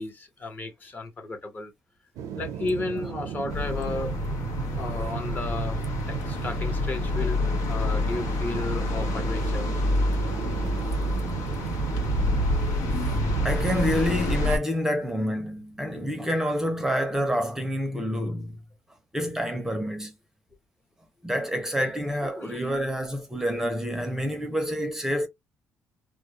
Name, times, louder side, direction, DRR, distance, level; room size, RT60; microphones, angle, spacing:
voice 1, 0.0-1.7 2.3-5.8 6.1-7.4 7.7-9.7 22.4-22.7, left 2 dB, 35° left, 0.8 m, -33 dB
sound 1, 2.2-15.2 15.6-15.7, right 9 dB, 85° right, 0.5 m, -35 dB
sound 2, 3.5-14.6, left 2 dB, 90° left, 0.8 m, -27 dB
voice 2, 13.4-18.6 19.1-20.1 21.2-25.3, equal, 10° right, 0.5 m, -28 dB
2.2 x 2.0 x 2.8 m
cardioid pair, 110°, 6 cm